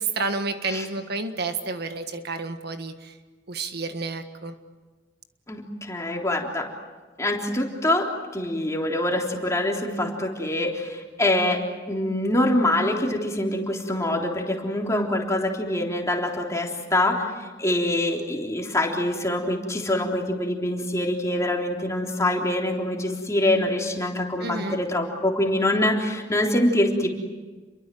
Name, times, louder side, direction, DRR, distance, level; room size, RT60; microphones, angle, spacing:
voice 1, 0.0-3.2 3.5-4.5 24.4-24.8, right 3 dB, 60° right, 7 dB, 1.6 m, -30 dB
voice 2, 5.5-6.7 7.2-11.6 11.9-17.3 17.6-27.1, left 1 dB, 15° left, 0 dB, 3.6 m, -25 dB
29.5 x 23.0 x 7.8 m, 1.3 s
head